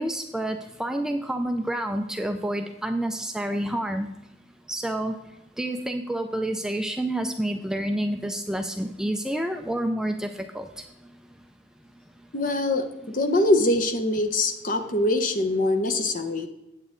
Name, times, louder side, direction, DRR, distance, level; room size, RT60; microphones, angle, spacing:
voice 1, 0.0-4.1 4.7-5.2 5.6-10.7, right 1 dB, 5° right, 5 dB, 0.4 m, -28 dB
voice 2, 12.3-16.5, left 1 dB, 45° left, 7 dB, 0.8 m, -23 dB
8.4 x 8.2 x 3.7 m, 0.97 s
head